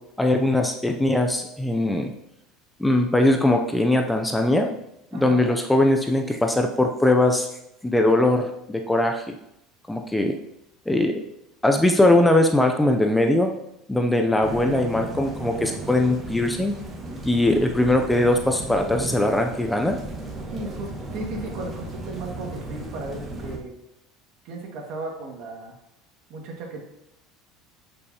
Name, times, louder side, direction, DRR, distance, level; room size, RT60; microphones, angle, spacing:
voice 1, 0.2-2.1 2.8-4.7 5.1-7.5 7.8-9.3 9.9-10.3 10.9-11.1 11.6-13.5 13.9-16.7 17.3-20.0, left 1 dB, 5° left, 4 dB, 0.5 m, -20 dB
voice 2, 14.3-15.7 20.5-23.7 24.4-25.7 26.3-26.8, right 3 dB, 60° right, 1 dB, 2.0 m, -36 dB
sound 1, 14.4-23.6, right 2 dB, 25° right, 1.5 m, -36 dB
10.5 x 5.4 x 2.9 m, 0.84 s
supercardioid pair, 120°, 0 cm